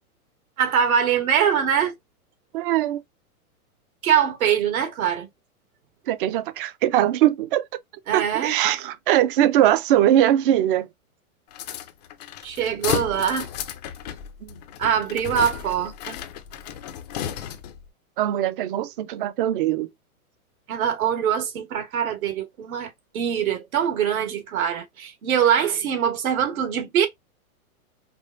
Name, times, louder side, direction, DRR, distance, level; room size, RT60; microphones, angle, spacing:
voice 1, 0.6-1.9 4.0-5.3 8.1-8.6 12.4-13.5 14.8-16.2 20.7-22.9 23.1-27.1, right 8 dB, 70° right, 1.7 m, -23 dB
voice 2, 2.5-3.0 6.1-7.6 8.1-10.9 14.4-14.6 18.2-19.9, right 12 dB, 40° right, 0.5 m, -21 dB
sound 1, 11.5-17.9, left 10 dB, 30° left, 0.4 m, -33 dB
5.3 x 2.2 x 2.5 m
hypercardioid pair, 140°, 44 cm